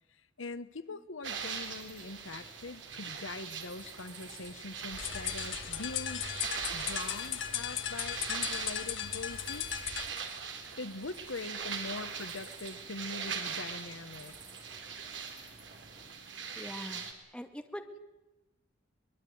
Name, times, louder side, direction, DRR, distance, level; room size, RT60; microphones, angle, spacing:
voice 1, 0.1-6.3 6.7-9.7 10.8-14.3, left 3 dB, 85° left, 14 dB, 1.2 m, -43 dB
sound 1, 1.2-16.1, right 2 dB, 25° right, 5.0 m, -57 dB
sound 2, 1.2-17.1, right 6 dB, 65° right, 3.6 m, -41 dB
scare birds, 4.9-10.1, left 9 dB, 70° left, 1.9 m, -36 dB
voice 2, 16.6-18.0, equal, 5° left, 6 dB, 1.9 m, -43 dB
23.0 x 21.5 x 9.5 m, 1.0 s
head